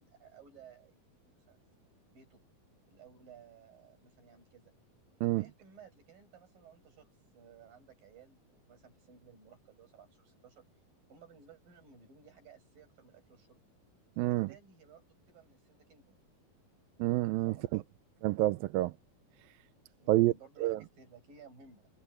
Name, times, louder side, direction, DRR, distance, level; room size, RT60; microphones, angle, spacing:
voice 1, 0.0-1.7 2.1-2.4 2.9-4.7 5.4-7.1 7.3-10.6 11.1-13.6 14.2-16.2 17.4-17.8 20.0-21.9, right 6 dB, 65° right, 9.6 m, -58 dB
voice 2, 14.2-14.5 17.0-17.8 18.2-18.9 20.1-20.3 20.6-20.8, right 17 dB, 80° right, 2.3 m, -28 dB
omnidirectional pair, 4.3 m